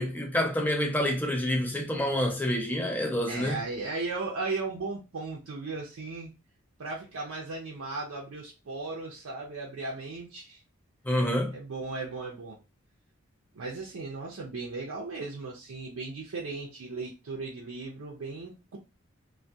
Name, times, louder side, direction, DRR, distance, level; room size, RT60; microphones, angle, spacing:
voice 1, 0.0-3.6 11.1-11.5, left 1 dB, 10° left, 0.4 m, -28 dB
voice 2, 3.3-6.3 6.8-10.6 11.5-12.6 13.5-18.8, right 3 dB, 85° right, 0.5 m, -36 dB
2.2 x 2.1 x 2.6 m
head